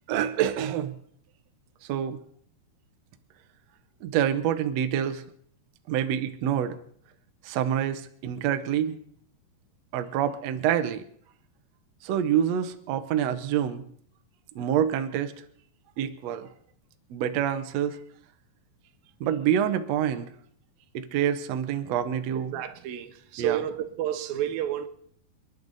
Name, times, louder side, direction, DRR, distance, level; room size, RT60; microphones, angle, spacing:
voice 1, 0.1-1.0 1.8-2.2 4.0-5.2 5.9-6.8 7.4-9.0 9.9-11.0 12.0-13.8 14.5-15.3 16.0-16.5 17.1-18.0 19.2-20.3 20.9-22.6 23.4-23.6, right 9 dB, 90° right, 1.4 m, -27 dB
voice 2, 22.5-24.9, right 11 dB, 75° right, 2.7 m, -30 dB
29.0 x 10.5 x 4.0 m
omnidirectional pair, 4.5 m